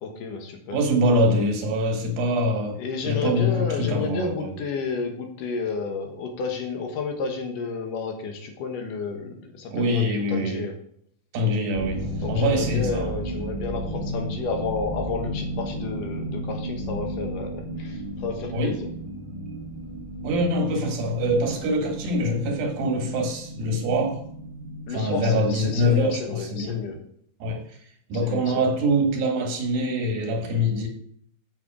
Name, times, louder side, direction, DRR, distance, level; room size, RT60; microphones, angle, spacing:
voice 1, 0.0-0.8 2.8-10.7 12.1-18.9 24.9-27.0 28.2-28.7, left 4 dB, 70° left, 3 dB, 2.8 m, -31 dB
voice 2, 0.7-4.5 9.7-10.6 11.3-13.1 18.5-18.7 20.2-24.2 24.9-26.8 27.4-27.6 28.1-30.9, equal, 85° right, 3 dB, 3.5 m, -24 dB
sound 1, 11.7-26.9, right 1 dB, 30° right, 0.9 m, -34 dB
7.9 x 7.0 x 4.9 m, 0.65 s
omnidirectional pair, 4.0 m